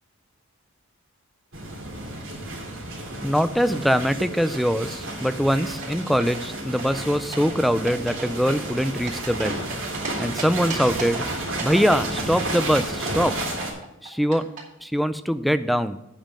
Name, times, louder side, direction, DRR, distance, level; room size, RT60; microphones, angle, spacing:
sound 1, 1.5-13.7, right 2 dB, 70° right, 2.6 m, -32 dB
voice 1, 3.2-9.6 10.2-11.2 11.6-13.4 14.0-14.5 14.8-16.0, equal, ahead, 11 dB, 0.4 m, -23 dB
sound 2, 5.7-6.4 6.8-7.5 7.9-8.2 8.5-10.1 10.4-11.2 11.6-14.6, right 4 dB, 40° right, 2.5 m, -35 dB
8.9 x 5.5 x 7.3 m, 0.90 s
head